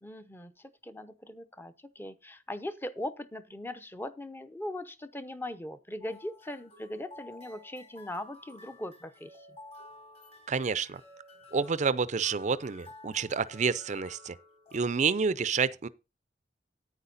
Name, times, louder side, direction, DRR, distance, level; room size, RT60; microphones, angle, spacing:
voice 1, 0.0-9.5, left 1 dB, 15° left, 0.7 m, -40 dB
sound 1, 6.0-14.8, left 2 dB, 35° left, 3.0 m, -52 dB
voice 2, 10.5-11.0 11.5-14.3 14.7-15.9, right 5 dB, 40° right, 0.5 m, -29 dB
9.8 x 9.1 x 4.0 m
head